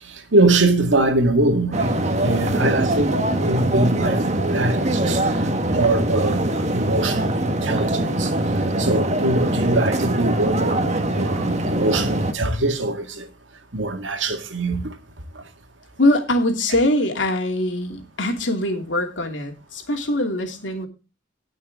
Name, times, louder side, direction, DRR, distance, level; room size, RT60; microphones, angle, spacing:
voice 1, 0.1-2.0 2.2-5.3 5.7-8.3 8.8-13.3 13.7-14.9 15.4-15.5, right 2 dB, 80° right, 2.1 m, -22 dB
sound 1, 1.7-12.3, right 1 dB, 40° right, 1.6 m, -22 dB
voice 2, 16.0-20.9, left 1 dB, 80° left, 2.8 m, -22 dB
18.5 x 6.4 x 3.6 m
head